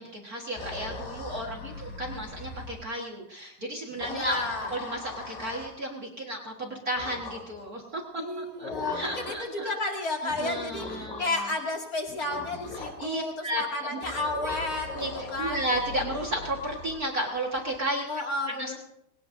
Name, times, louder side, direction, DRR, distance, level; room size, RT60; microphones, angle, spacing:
voice 1, 0.0-4.4 4.7-9.7 10.4-11.4 12.8-13.6 13.9-14.0 14.9-18.1 18.5-18.8, right 1 dB, 55° right, 1 dB, 0.9 m, -33 dB
sound 1, 0.6-2.8 3.9-5.7 7.0-7.7 8.6-9.5 10.3-11.4 12.1-13.1 14.0-17.8, left 3 dB, 80° left, 4.7 m, -40 dB
voice 2, 4.1-4.7 8.2-15.6 18.1-18.8, left 2 dB, 30° left, 0 dB, 2.0 m, -32 dB
20.0 x 18.0 x 2.6 m, 0.78 s
omnidirectional pair, 4.2 m